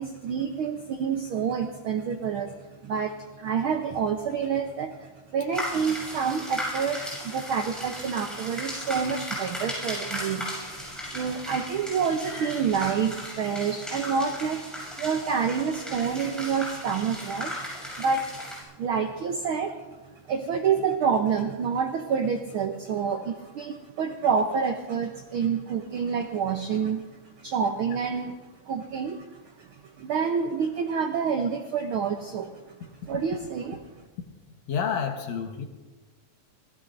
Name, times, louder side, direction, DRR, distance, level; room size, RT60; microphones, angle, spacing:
voice 1, 0.0-2.5 2.8-14.6 15.0-17.5 18.0-18.4 18.8-19.8 20.3-27.0 27.4-28.4 28.6-32.8 33.1-33.8, right 6 dB, 80° right, 5 dB, 1.1 m, -28 dB
sound 1, 5.5-18.6, equal, ahead, 6.6 m, -36 dB
voice 2, 34.7-35.7, left 7 dB, 65° left, 5 dB, 2.3 m, -29 dB
25.0 x 18.0 x 2.6 m, 1.2 s
omnidirectional pair, 3.4 m